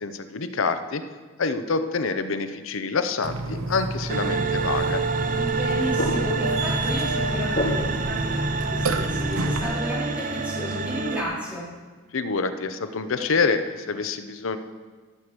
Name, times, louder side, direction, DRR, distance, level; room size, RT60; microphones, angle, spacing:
voice 1, 0.0-1.0 1.4-5.0 12.1-14.6, left 4 dB, 70° left, 10 dB, 0.7 m, -26 dB
Burping eructation, 3.2-9.6, right 2 dB, 85° right, 0.8 m, -30 dB
sound 1, 4.1-11.2, right 4 dB, 40° right, 0.6 m, -27 dB
sound 2, 4.6-9.7, left 1 dB, 40° left, 2.9 m, -33 dB
voice 2, 5.3-11.6, equal, 5° right, -8 dB, 3.8 m, -33 dB
13.0 x 6.6 x 6.1 m, 1.4 s
head